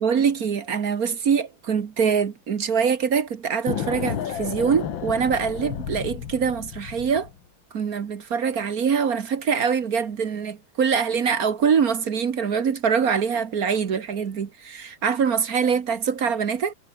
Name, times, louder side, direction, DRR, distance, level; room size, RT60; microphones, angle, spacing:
voice 1, 0.0-7.3 7.7-16.7, right 6 dB, 50° right, 1.6 m, -24 dB
sound 1, 3.7-7.4, left 9 dB, 70° left, 2.1 m, -32 dB
omnidirectional pair, 2.2 m